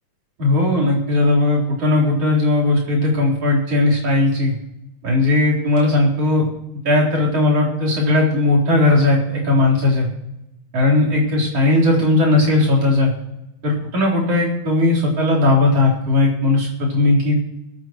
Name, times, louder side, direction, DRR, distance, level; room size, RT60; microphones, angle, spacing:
voice 1, 0.4-4.5 5.0-6.4 6.8-10.1 10.7-13.1 13.6-17.4, left 2 dB, 55° right, -2 dB, 5.0 m, -17 dB
21.0 x 14.0 x 3.1 m, 0.88 s
omnidirectional pair, 3.3 m